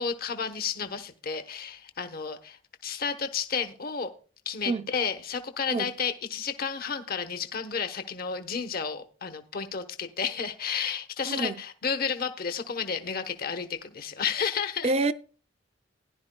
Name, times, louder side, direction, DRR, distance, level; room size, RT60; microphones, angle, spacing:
voice 1, 0.0-4.1 4.5-14.9, left 6 dB, 55° left, 0.9 m, -32 dB
voice 2, 11.2-11.6 14.8-15.1, right 3 dB, 35° right, 0.5 m, -27 dB
16.0 x 11.0 x 2.2 m
head